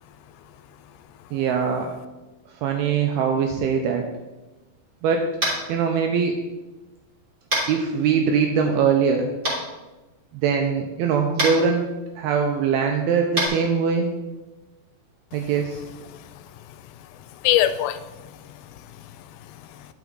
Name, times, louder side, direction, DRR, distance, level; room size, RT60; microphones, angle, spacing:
voice 1, 1.3-1.9 2.6-4.0 5.0-5.3 5.7-6.4 7.7-9.3 10.3-11.8 12.2-14.1 15.3-15.8, right 6 dB, 90° right, 3 dB, 2.2 m, -22 dB
Tap, 5.4-5.6 7.5-7.7 9.4-9.5 11.3-11.5 13.3-13.5, right 1 dB, 20° right, 2.2 m, -23 dB
voice 2, 16.1-16.4 17.4-19.0 19.5-19.9, left 12 dB, 85° left, 11 dB, 2.8 m, -26 dB
10.5 x 6.0 x 3.8 m, 1.1 s
omnidirectional pair, 5.0 m